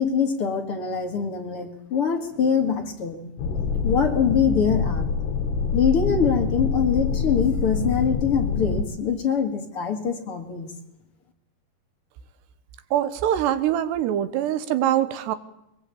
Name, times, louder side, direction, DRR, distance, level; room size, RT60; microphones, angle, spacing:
voice 1, 0.0-3.3 3.8-5.1 5.7-10.7, left 6 dB, 40° left, 4 dB, 2.3 m, -24 dB
sound 1, 3.4-8.8, left 5 dB, 80° left, 4.3 m, -25 dB
voice 2, 12.9-15.4, right 11 dB, 85° right, 13 dB, 3.3 m, -23 dB
22.5 x 21.5 x 8.5 m, 0.86 s
omnidirectional pair, 4.8 m